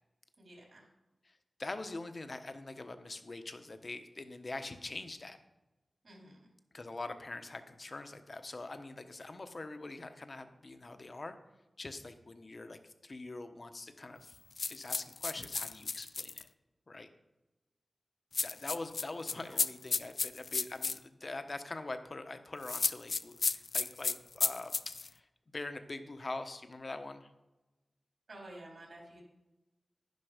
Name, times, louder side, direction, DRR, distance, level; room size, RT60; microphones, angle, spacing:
voice 1, 0.4-0.8 6.0-6.4 19.3-19.4 28.3-29.2, right 1 dB, 65° right, -1 dB, 4.1 m, -51 dB
voice 2, 1.2-5.4 6.7-11.4 11.8-14.4 14.7-16.5 16.9-17.1 18.4-25.3 25.5-27.3, left 2 dB, 50° left, 8 dB, 1.1 m, -44 dB
sound 1, 14.6-16.4 18.3-21.0 22.6-25.1, left 4 dB, 70° left, 0.4 m, -33 dB
11.0 x 10.5 x 5.1 m, 1.1 s
wide cardioid pair, 70°, 0 cm